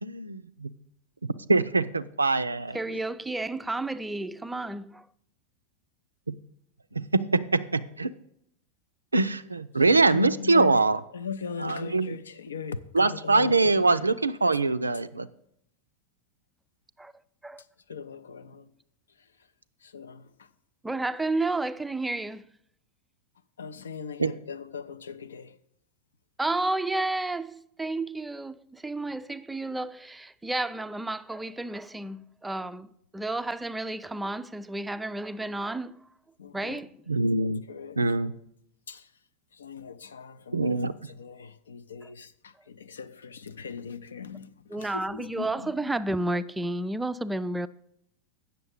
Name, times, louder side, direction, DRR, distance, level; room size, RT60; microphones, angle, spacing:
voice 1, 0.0-0.7 1.5-2.8 6.3-6.4 6.9-8.1 9.1-11.0 11.6-12.2 12.9-15.3 24.2-24.3 37.1-37.6 38.0-38.3 40.5-40.9, right 3 dB, 80° right, 0.4 m, -23 dB
voice 2, 2.7-5.1 17.0-17.1 17.4-17.6 20.8-22.5 26.4-36.0 36.5-36.9 44.7-47.7, right 2 dB, 5° right, 0.3 m, -31 dB
voice 3, 10.1-10.8 11.1-14.1 17.9-18.7 19.8-20.5 23.6-25.6 36.4-36.8 37.7-38.0 38.9-39.1 39.5-45.9, left 5 dB, 70° left, 0.4 m, -39 dB
8.6 x 6.7 x 6.3 m
figure-of-eight pair, 90°, 0 cm